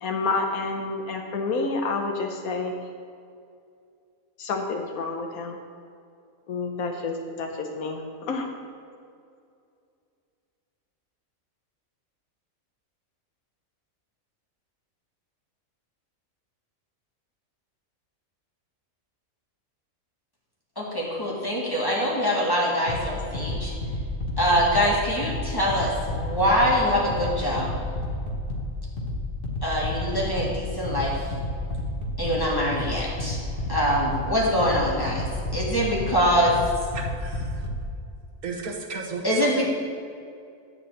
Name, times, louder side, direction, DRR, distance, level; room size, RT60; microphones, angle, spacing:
voice 1, 0.0-2.7 4.4-5.6 6.5-8.0 8.3-8.5, left 3 dB, 90° left, 3 dB, 1.3 m, -29 dB
voice 2, 20.8-23.7 24.4-27.7 29.6-31.3 32.2-33.4 33.7-35.3 35.5-36.6 39.2-39.6, equal, 15° left, -5 dB, 1.9 m, -24 dB
sound 1, 22.9-37.9, left 1 dB, 40° left, 1.4 m, -31 dB
voice 3, 36.9-37.6 38.4-39.6, right 4 dB, 85° right, 1 dB, 1.6 m, -34 dB
10.5 x 4.1 x 7.7 m, 2.4 s
omnidirectional pair, 1.5 m